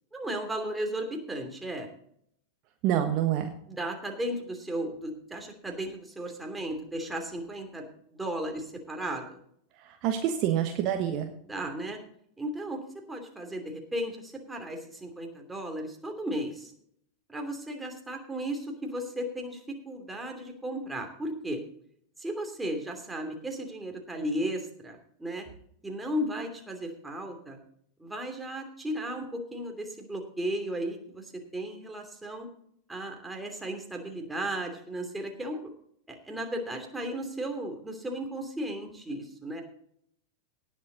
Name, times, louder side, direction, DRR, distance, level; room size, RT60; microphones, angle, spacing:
voice 1, 0.1-1.9 3.7-7.9 8.2-9.4 11.5-12.0 12.4-12.8 13.1-16.7 17.3-21.6 22.2-25.5 25.8-27.6 28.0-32.5 32.9-35.7 36.1-39.6, right 1 dB, 5° right, 3 dB, 2.9 m, -35 dB
voice 2, 2.8-3.5 10.0-11.3, right 10 dB, 40° right, 5 dB, 1.4 m, -26 dB
18.5 x 7.4 x 4.1 m, 0.66 s
figure-of-eight pair, 90°, 0 cm